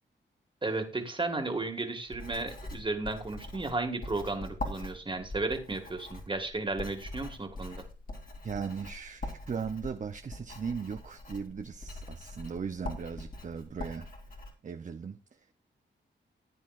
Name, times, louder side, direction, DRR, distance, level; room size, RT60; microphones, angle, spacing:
voice 1, 0.6-7.8, right 2 dB, 25° right, 1.7 m, -34 dB
Writing, 2.1-14.5, left 2 dB, 45° left, 2.7 m, -43 dB
voice 2, 8.4-14.1 14.6-15.5, right 6 dB, 40° right, 0.6 m, -38 dB
15.0 x 9.5 x 2.4 m
wide cardioid pair, 95°, 20 cm